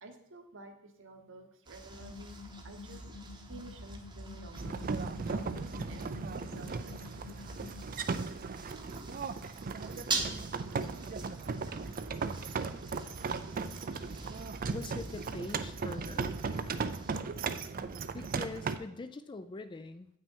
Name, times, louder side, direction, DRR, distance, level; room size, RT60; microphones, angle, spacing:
voice 1, 0.0-3.0 3.5-4.9 5.3-6.1 6.4-7.0, right 2 dB, 60° right, 5 dB, 1.2 m, -51 dB
sound 1, 1.7-17.2, right 3 dB, 20° right, 0.9 m, -44 dB
sound 2, 1.9-8.0, left 3 dB, 75° left, 1.5 m, -50 dB
sound 3, 4.5-18.8, right 4 dB, 40° right, 0.4 m, -37 dB
voice 2, 14.7-16.3 18.1-20.1, left 3 dB, 20° left, 11 dB, 0.4 m, -43 dB
8.6 x 6.1 x 4.6 m, 0.69 s
head